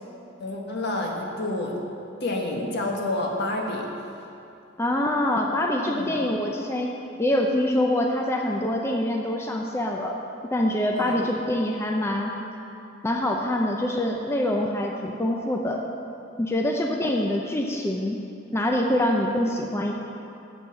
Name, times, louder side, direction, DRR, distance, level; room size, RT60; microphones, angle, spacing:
voice 1, 0.4-1.7 2.2-3.9 5.9-6.2 10.9-11.1, left 2 dB, 60° left, 0 dB, 1.5 m, -29 dB
voice 2, 4.8-6.9 7.2-10.1 10.5-12.3 13.0-15.8 16.4-18.2 18.5-19.9, left 1 dB, 15° left, 1 dB, 0.6 m, -25 dB
8.5 x 7.2 x 7.2 m, 2.7 s
head